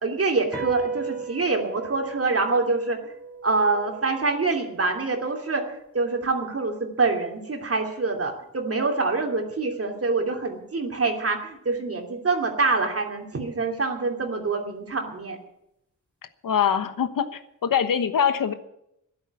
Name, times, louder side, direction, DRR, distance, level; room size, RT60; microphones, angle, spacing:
voice 1, 0.0-3.0 3.4-15.4, right 3 dB, 45° right, 3 dB, 2.8 m, -25 dB
sound 1, 0.5-7.2, right 5 dB, 5° left, 4.1 m, -37 dB
voice 2, 16.4-18.5, left 8 dB, 85° left, 11 dB, 1.2 m, -23 dB
13.0 x 11.0 x 8.5 m, 0.80 s
wide cardioid pair, 105°, 32 cm